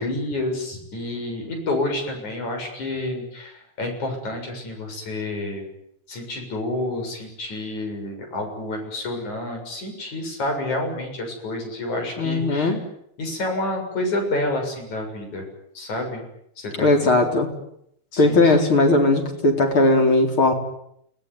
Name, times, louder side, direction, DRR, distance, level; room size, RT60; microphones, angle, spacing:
voice 1, 0.0-5.7 6.1-12.7 13.2-15.5 15.8-16.2 16.6-17.3 18.1-18.5, left 2 dB, 80° left, 4 dB, 8.4 m, -29 dB
voice 2, 12.2-12.8 16.8-17.5 18.2-20.5, left 2 dB, 45° left, 3 dB, 4.9 m, -18 dB
29.0 x 19.0 x 9.6 m, 0.75 s
omnidirectional pair, 3.3 m